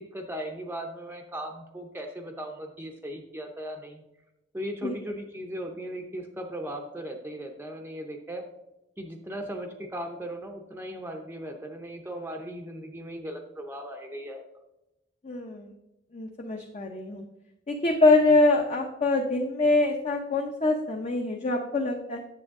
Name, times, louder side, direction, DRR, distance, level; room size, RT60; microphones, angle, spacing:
voice 1, 0.0-4.0 4.5-8.4 9.0-14.4, equal, 10° right, 3 dB, 0.6 m, -37 dB
voice 2, 4.8-5.2 15.2-15.7 16.1-17.3 17.7-22.2, left 2 dB, 35° left, 2 dB, 0.7 m, -24 dB
7.6 x 7.1 x 3.6 m, 0.93 s
head